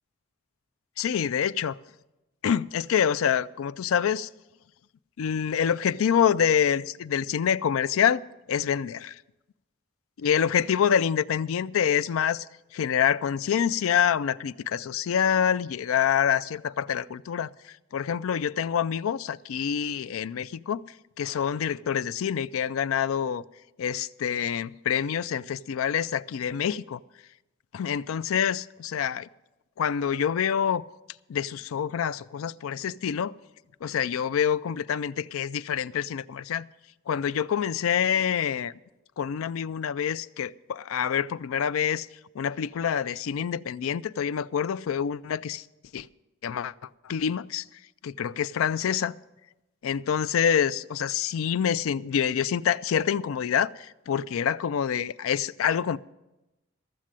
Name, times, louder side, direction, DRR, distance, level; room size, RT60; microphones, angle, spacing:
voice 1, 1.0-1.8 2.4-4.3 5.2-8.2 8.5-9.1 10.2-12.4 12.7-17.5 17.9-20.8 21.2-23.4 23.8-27.0 27.7-29.3 29.8-30.8 31.3-33.3 33.8-36.6 37.1-38.7 39.2-42.1 42.4-45.6 45.9-46.1 46.4-46.7 47.0-47.6 48.0-49.2 49.8-56.0, left 8 dB, 90° left, 0.4 m, -26 dB
13.5 x 7.4 x 7.5 m
head